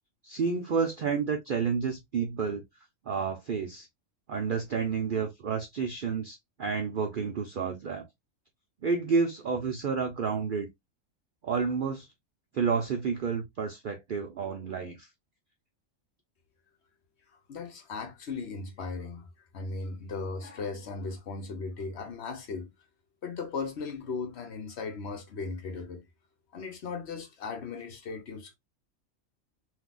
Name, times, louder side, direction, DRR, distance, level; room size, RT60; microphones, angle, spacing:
voice 1, 0.2-2.6 3.1-3.9 4.3-8.1 8.8-10.7 11.4-12.1 12.5-15.1, right 5 dB, 65° right, 0.5 m, -30 dB
voice 2, 17.5-19.3 19.5-22.7 23.2-26.0 26.5-28.6, left 4 dB, 55° left, 1.0 m, -37 dB
3.7 x 2.7 x 2.4 m
omnidirectional pair, 1.5 m